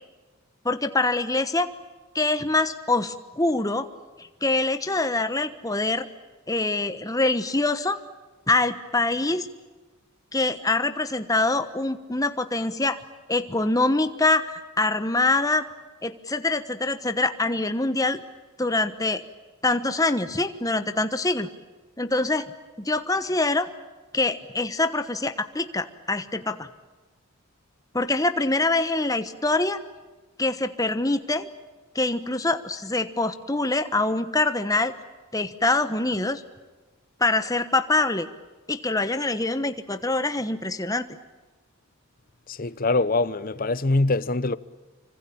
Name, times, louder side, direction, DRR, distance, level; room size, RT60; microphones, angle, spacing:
voice 1, 0.6-1.7 2.1-3.9 4.2-6.1 6.5-8.0 8.5-9.5 10.3-13.0 13.3-15.6 16.0-18.2 18.6-19.2 19.6-21.5 22.0-22.5 22.8-23.7 24.1-26.7 27.9-29.8 30.4-31.5 31.9-34.9 35.3-36.4 37.2-38.3 38.7-41.1, left 2 dB, 15° left, 1.2 m, -24 dB
voice 2, 42.5-44.6, left 2 dB, 40° left, 0.8 m, -23 dB
26.0 x 25.0 x 8.7 m
head